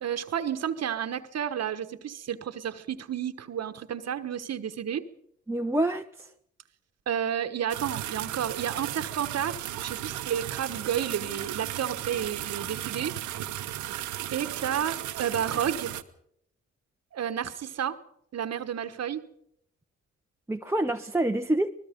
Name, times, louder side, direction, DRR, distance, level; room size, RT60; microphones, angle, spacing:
voice 1, 0.0-5.0 7.1-13.1 14.3-15.9 17.1-18.0 18.3-19.2, right 9 dB, 60° right, 9 dB, 1.3 m, -31 dB
voice 2, 5.5-6.3 20.5-21.7, right 1 dB, 10° right, 3 dB, 0.9 m, -27 dB
sound 1, 7.7-16.0, right 13 dB, 80° right, 1.0 m, -35 dB
25.0 x 20.0 x 5.2 m, 0.73 s
supercardioid pair, 55°, 29 cm